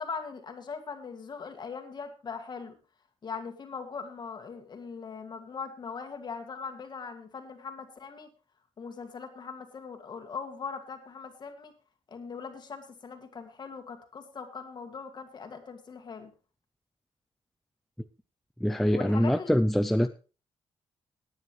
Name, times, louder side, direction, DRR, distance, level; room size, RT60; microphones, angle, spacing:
voice 1, 0.0-2.8 3.2-8.3 8.8-11.7 12.1-16.3 18.9-19.5, left 5 dB, 40° left, 2.0 m, -40 dB
voice 2, 18.6-20.1, equal, ahead, 0.5 m, -24 dB
18.5 x 9.5 x 3.1 m
wide cardioid pair, 145°, 11 cm